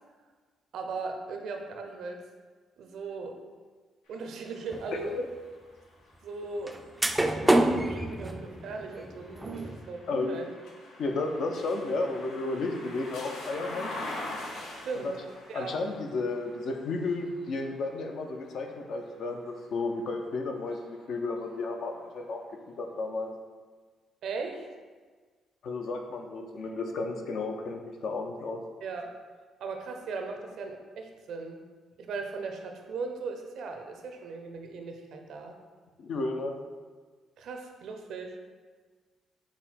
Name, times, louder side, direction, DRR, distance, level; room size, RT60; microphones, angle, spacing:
voice 1, 0.7-2.2 2.8-3.4 4.1-5.2 6.2-6.8 7.3-10.5 14.7-15.2 15.5-15.8 24.2-24.7 28.8-29.1 29.6-31.6 32.0-35.6 37.4-38.4, right 4 dB, 75° right, 4 dB, 0.5 m, -38 dB
sound 1, 4.1-20.0 20.6-21.8, left 2 dB, 85° left, 1.0 m, -45 dB
sound 2, 4.7-4.9 6.7-6.8 7.0-9.8, right 1 dB, 10° right, 0.3 m, -26 dB
voice 2, 4.9-5.3 10.1-10.3 11.0-13.9 14.9-15.1 15.5-22.4 22.8-23.3 25.6-28.6 36.0-36.5, left 3 dB, 65° left, 4 dB, 0.5 m, -33 dB
5.8 x 2.2 x 4.2 m, 1.5 s
cardioid pair, 90°, 0 cm